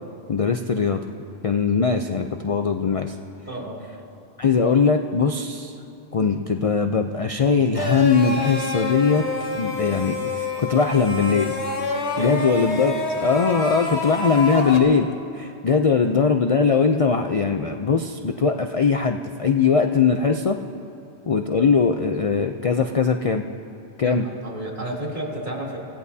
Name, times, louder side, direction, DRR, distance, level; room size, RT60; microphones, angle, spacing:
voice 1, 0.3-1.0 1.4-3.1 4.4-5.7 6.1-9.3 9.5-11.5 12.2-12.9 13.2-20.6 21.3-23.4 24.0-24.3, left 5 dB, 45° left, 5 dB, 0.5 m, -20 dB
voice 2, 3.5-3.8 12.2-12.9 24.0-25.8, right 1 dB, 45° right, -5 dB, 3.0 m, -32 dB
sound 1, 7.7-14.8, left 2 dB, 80° left, 1.6 m, -27 dB
29.0 x 17.0 x 2.8 m, 2.6 s
omnidirectional pair, 1.1 m